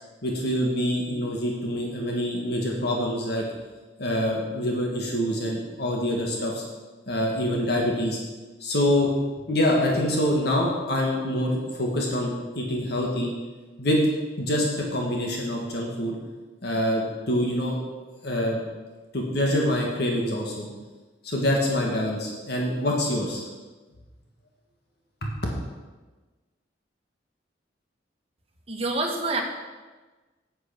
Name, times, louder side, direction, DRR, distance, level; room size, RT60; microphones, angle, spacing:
voice 1, 0.2-3.4 4.0-6.6 7.1-8.2 8.6-9.1 9.5-13.3 13.8-14.0 14.4-16.2 16.6-17.8 18.2-18.6 19.1-20.7 21.2-23.4, left 1 dB, 60° left, -1 dB, 1.8 m, -25 dB
voice 2, 28.7-29.4, right 2 dB, 35° right, 1 dB, 1.5 m, -26 dB
8.6 x 8.0 x 6.0 m, 1.2 s
head